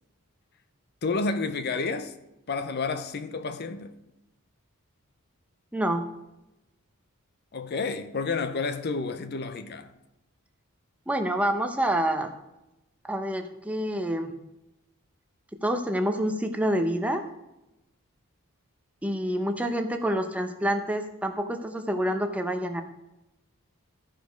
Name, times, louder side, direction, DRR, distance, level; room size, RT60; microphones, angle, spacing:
voice 1, 1.0-2.1 2.5-3.9 7.5-9.9, left 4 dB, 45° left, 0.6 m, -30 dB
voice 2, 5.7-6.1 11.1-12.3 13.0-14.3 15.6-17.2 19.0-22.8, right 1 dB, 5° right, 0.6 m, -27 dB
14.0 x 5.1 x 5.1 m
head